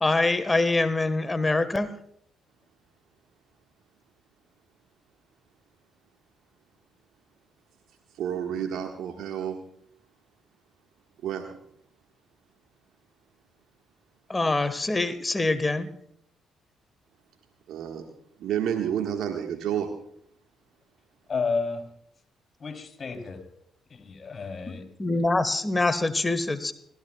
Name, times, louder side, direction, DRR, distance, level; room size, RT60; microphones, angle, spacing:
voice 1, 0.0-1.9 14.3-15.9 24.7-26.7, left 2 dB, 20° left, 12 dB, 1.4 m, -25 dB
voice 2, 8.1-9.6 11.2-11.6 17.7-18.1 18.4-20.0, right 9 dB, 65° right, 3 dB, 1.6 m, -30 dB
voice 3, 21.3-21.9 22.6-23.4 23.9-24.8, left 4 dB, 40° left, 5 dB, 3.3 m, -31 dB
29.0 x 13.5 x 2.4 m, 0.68 s
hypercardioid pair, 45°, 0 cm